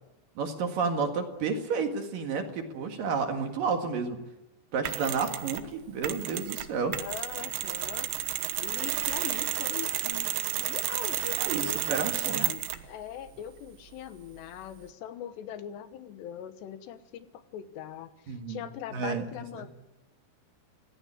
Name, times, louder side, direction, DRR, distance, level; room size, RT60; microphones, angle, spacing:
voice 1, 0.4-4.2 4.7-6.9 11.4-12.5 18.3-18.6 18.9-19.2 19.6-19.7, right 5 dB, 55° right, 5 dB, 3.3 m, -31 dB
Mechanisms, 4.9-5.7 6.0-12.9, right 14 dB, 80° right, 3.3 m, -31 dB
voice 2, 7.0-19.7, left 10 dB, 80° left, 10 dB, 3.3 m, -41 dB
25.0 x 18.0 x 8.8 m, 0.98 s
omnidirectional pair, 5.0 m